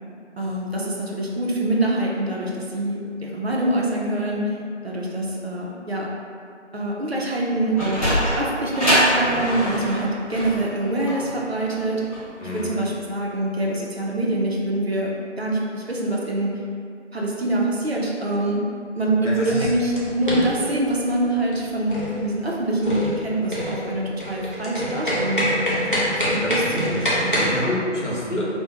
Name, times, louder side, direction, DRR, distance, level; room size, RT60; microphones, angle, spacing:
voice 1, 0.4-4.6 4.8-6.1 6.7-8.1 8.4-12.0 12.5-16.5 17.1-18.7 19.0-27.4, right 1 dB, 60° right, -3 dB, 0.5 m, -25 dB
Sliding door, 7.5-12.6, equal, 30° left, 0.9 m, -24 dB
voice 2, 12.4-12.8 19.2-19.7 26.4-27.0 27.3-28.4, left 1 dB, 75° left, -5 dB, 0.8 m, -28 dB
sound 1, 19.5-27.5, equal, 45° left, 0.5 m, -26 dB
2.5 x 2.1 x 2.7 m, 2.4 s
figure-of-eight pair, 170°, 36 cm